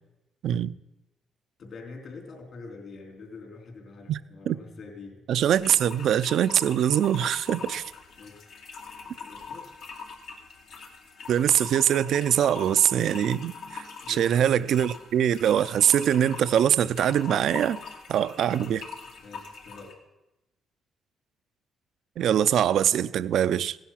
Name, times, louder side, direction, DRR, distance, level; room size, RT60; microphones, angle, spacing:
voice 1, 0.4-0.7 4.1-4.2 4.5-4.6 5.3-7.8 11.3-17.8 18.1-18.8 22.2-23.8, right 10 dB, 70° right, 0.5 m, -23 dB
voice 2, 1.6-5.2 7.6-7.8 8.2-8.5 9.0-9.7 14.0-14.5 18.6-18.9 19.2-20.0, left 4 dB, 60° left, 3.8 m, -45 dB
sound 1, 5.5-20.0, left 5 dB, 80° left, 2.5 m, -43 dB
16.5 x 10.5 x 5.8 m
cardioid pair, 90°, 0 cm